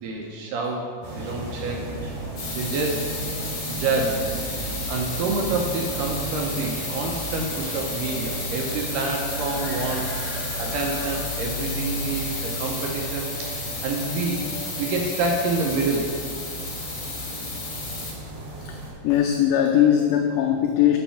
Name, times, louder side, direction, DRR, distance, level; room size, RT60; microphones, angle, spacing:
voice 1, 0.0-1.9 2.5-3.1 3.7-4.3 4.9-10.1 10.6-14.5 14.8-16.1, right 3 dB, 80° right, 0 dB, 2.0 m, -28 dB
sound 1, 1.0-18.9, right 1 dB, 50° right, 2.2 m, -34 dB
sound 2, 2.4-18.1, left 3 dB, 60° left, 1.3 m, -33 dB
voice 2, 19.0-21.0, left 10 dB, 85° left, 3 dB, 1.9 m, -20 dB
7.2 x 5.6 x 5.6 m, 2.2 s
omnidirectional pair, 4.5 m